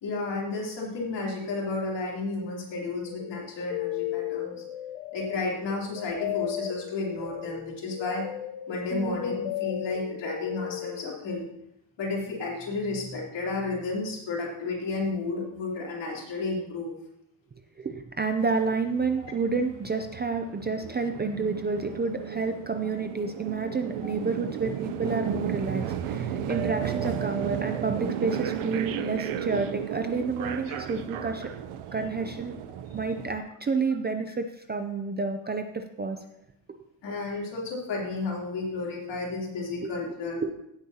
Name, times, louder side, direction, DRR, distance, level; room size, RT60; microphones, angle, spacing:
voice 1, 0.0-4.6 5.1-8.3 8.7-11.5 12.0-17.0 30.7-30.8 37.0-40.4, left 3 dB, 60° left, -3 dB, 3.4 m, -32 dB
sound 1, 3.1-11.3, left 14 dB, 85° left, 0.8 m, -35 dB
voice 2, 17.8-31.5 31.9-32.6 32.9-36.2 39.8-39.9 40.4-40.5, right 4 dB, 25° right, 6 dB, 0.3 m, -30 dB
sound 2, 18.4-33.4, right 9 dB, 90° right, 0.8 m, -34 dB
16.5 x 8.3 x 2.8 m, 0.80 s
cardioid pair, 175°, 49 cm